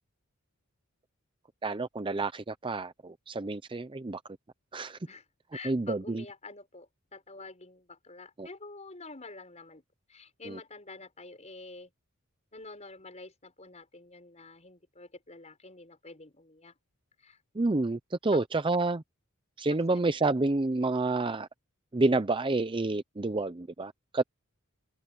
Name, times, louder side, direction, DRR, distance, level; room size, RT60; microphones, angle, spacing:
voice 1, 1.6-4.2 4.7-5.0 5.6-6.2 8.4-8.5 10.5-10.6 17.6-19.0 19.6-21.5 21.9-24.2, right 2 dB, 25° right, 0.6 m, -29 dB
voice 2, 5.5-9.8 10.1-11.9 12.5-16.7 17.2-17.4 18.3-18.4 20.2-20.4, left 3 dB, 30° left, 5.8 m, -48 dB
head